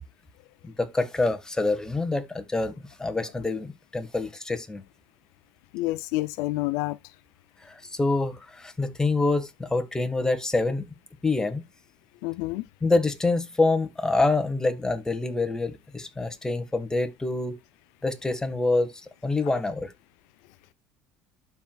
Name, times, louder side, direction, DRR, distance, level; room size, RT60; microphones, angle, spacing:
voice 1, 0.6-4.8 7.6-10.9 11.2-11.6 12.8-17.6 18.0-18.9 19.2-19.9, left 3 dB, 10° left, 1.6 m, -26 dB
voice 2, 5.7-7.0 12.2-12.6, left 19 dB, 75° left, 0.4 m, -28 dB
12.5 x 4.8 x 2.4 m
supercardioid pair, 90°, 5 cm